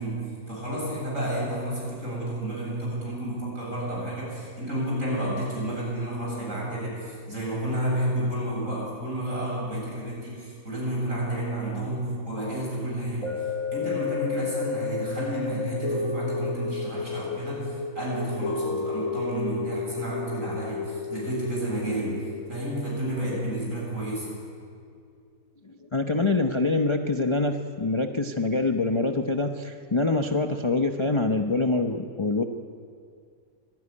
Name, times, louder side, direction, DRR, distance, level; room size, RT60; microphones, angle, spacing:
voice 1, 0.0-13.5 13.7-24.4, right 1 dB, 45° right, -3 dB, 8.1 m, -31 dB
sound 1, 13.2-23.6 24.0-24.1, left 4 dB, 50° left, 4.0 m, -32 dB
voice 2, 25.6-32.4, left 2 dB, 25° left, 5 dB, 0.6 m, -25 dB
24.5 x 15.5 x 10.0 m, 2.3 s
omnidirectional pair, 1.9 m